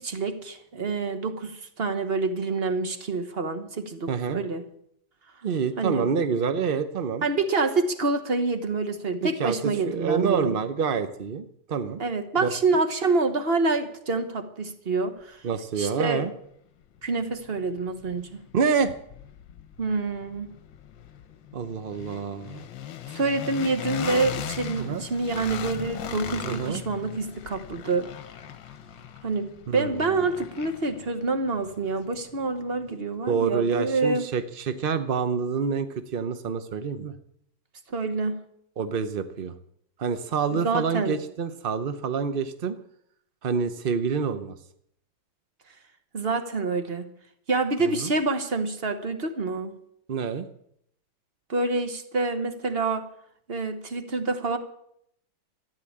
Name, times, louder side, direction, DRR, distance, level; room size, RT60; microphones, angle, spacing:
voice 1, 0.0-4.6 5.8-6.1 7.2-10.6 12.0-15.4 15.8-16.3 17.0-18.4 19.8-20.5 23.1-28.1 29.2-34.2 37.9-38.4 40.5-41.2 46.1-47.1 47.5-49.7 51.5-53.1 53.5-54.6, right 3 dB, 35° right, 8 dB, 1.3 m, -27 dB
voice 2, 4.1-4.4 5.4-7.3 9.2-12.0 12.4-12.5 15.4-16.3 18.5-18.9 21.5-22.6 24.7-25.0 26.4-26.8 29.7-30.1 33.3-37.1 38.8-39.5 40.0-42.8 43.4-44.5 47.8-48.1 50.1-50.5, right 6 dB, 60° right, 10 dB, 0.5 m, -27 dB
sound 1, 16.4-16.5 17.0-32.9, left 9 dB, 75° left, 1.6 m, -39 dB
13.5 x 9.8 x 8.6 m, 0.72 s
omnidirectional pair, 2.1 m